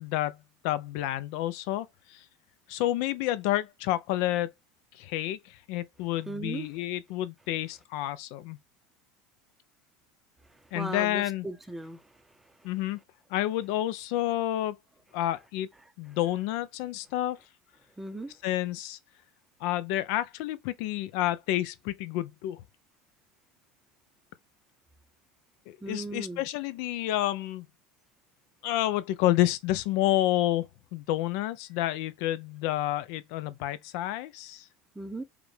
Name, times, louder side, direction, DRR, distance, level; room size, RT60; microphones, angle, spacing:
voice 1, 0.0-2.2 2.7-4.5 4.9-8.6 10.7-11.5 12.6-13.0 13.3-14.8 15.1-15.7 16.0-17.4 18.4-19.0 19.6-22.6 25.7-27.7 28.6-30.6 30.9-34.7, left 14 dB, 70° left, 0.5 m, -29 dB
voice 2, 6.3-6.7 10.7-12.0 18.0-18.3 25.8-26.4 35.0-35.2, right 2 dB, 5° right, 0.6 m, -37 dB
5.0 x 2.2 x 3.2 m
supercardioid pair, 125°, 2 cm